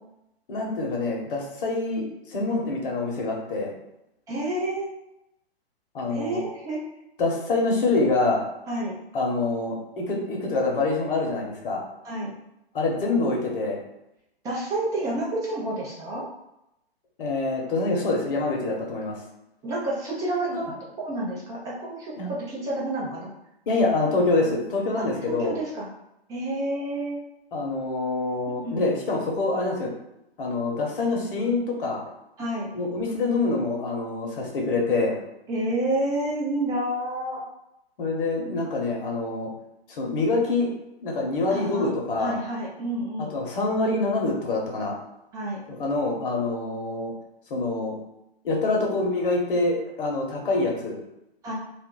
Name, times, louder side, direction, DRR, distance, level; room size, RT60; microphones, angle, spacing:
voice 1, 0.5-3.7 5.9-6.4 7.2-8.4 9.1-11.8 12.7-13.8 17.2-19.2 20.5-20.6 22.2-22.3 23.7-25.6 27.5-29.9 30.4-32.0 32.7-35.2 38.0-39.5 39.9-40.7 41.0-42.4 43.3-44.9 45.7-47.1 47.5-47.9 48.4-51.0, left 3 dB, 55° left, -1 dB, 1.0 m, -25 dB
voice 2, 4.3-4.9 6.1-6.8 8.7-8.9 12.0-12.3 14.4-16.2 19.6-23.3 25.3-25.9 26.3-27.2 28.6-28.9 32.4-32.7 35.5-37.4 41.5-41.9 42.2-43.3 45.3-45.6 51.4-51.5, right 1 dB, 10° right, -5 dB, 0.5 m, -29 dB
2.5 x 2.1 x 3.8 m, 0.86 s
hypercardioid pair, 130°, 31 cm